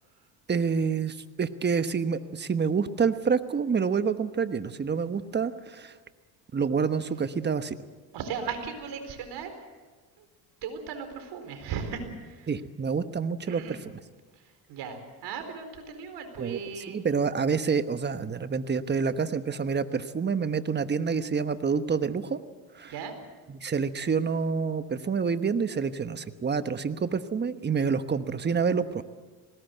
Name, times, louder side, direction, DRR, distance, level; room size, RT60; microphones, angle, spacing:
voice 1, 0.5-6.0 6.5-7.8 12.5-13.8 16.4-16.6 16.9-22.4 22.7-22.9 23.5-29.0, right 5 dB, 25° right, 11 dB, 1.2 m, -27 dB
voice 2, 8.1-9.5 10.2-10.3 10.6-12.5 13.5-13.8 14.4-17.0 22.8-23.1, right 6 dB, 65° right, 7 dB, 4.3 m, -37 dB
20.5 x 18.0 x 8.1 m, 1.3 s
supercardioid pair, 95°, 43 cm